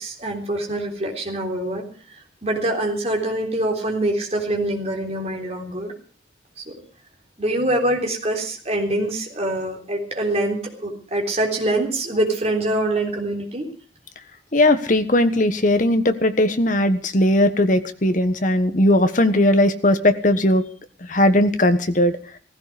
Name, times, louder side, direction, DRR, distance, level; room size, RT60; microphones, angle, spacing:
voice 1, 0.0-5.9 6.6-6.7 7.4-13.7, right 1 dB, 35° right, 2 dB, 3.6 m, -24 dB
voice 2, 14.5-20.6 21.1-22.2, left 1 dB, 45° left, 9 dB, 1.3 m, -18 dB
16.0 x 15.5 x 5.1 m, 0.41 s
head